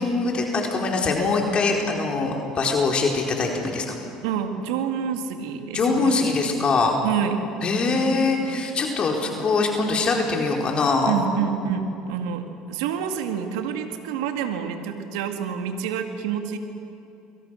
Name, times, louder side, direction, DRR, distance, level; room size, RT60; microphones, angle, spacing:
voice 1, 0.0-4.0 5.7-7.0 7.6-11.1, left 3 dB, 40° left, 1 dB, 4.4 m, -23 dB
voice 2, 4.2-6.1 7.0-7.4 11.1-12.4 12.7-16.6, right 8 dB, 80° right, 6 dB, 2.1 m, -27 dB
29.5 x 23.0 x 6.5 m, 2.8 s
hypercardioid pair, 75°, 3 cm